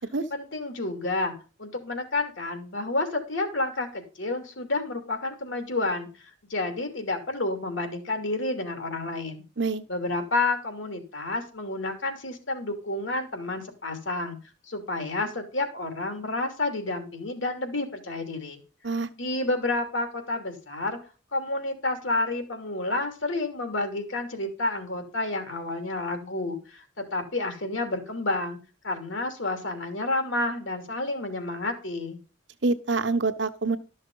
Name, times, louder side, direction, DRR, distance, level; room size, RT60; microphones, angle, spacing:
voice 1, 0.3-1.3 1.6-9.4 9.9-14.4 14.7-18.6 19.2-21.0 21.3-28.6 28.8-32.2, left 2 dB, 80° left, 6 dB, 2.9 m, -30 dB
voice 2, 32.6-33.8, right 3 dB, 65° right, 10 dB, 1.1 m, -26 dB
13.0 x 6.5 x 5.5 m, 0.34 s
head